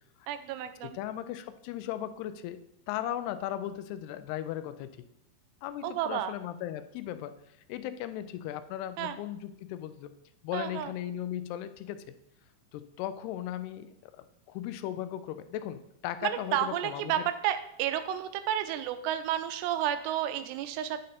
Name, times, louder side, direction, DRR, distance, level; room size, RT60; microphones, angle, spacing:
voice 1, 0.3-1.0 5.8-6.3 9.0-9.2 10.5-10.9 16.2-21.0, right 11 dB, 90° right, 11 dB, 2.8 m, -31 dB
voice 2, 0.8-2.6 2.9-4.9 5.6-7.3 7.7-10.1 10.4-12.1 12.7-17.2, left 12 dB, 85° left, 11 dB, 2.5 m, -37 dB
9.3 x 6.5 x 4.1 m, 0.75 s
omnidirectional pair, 4.7 m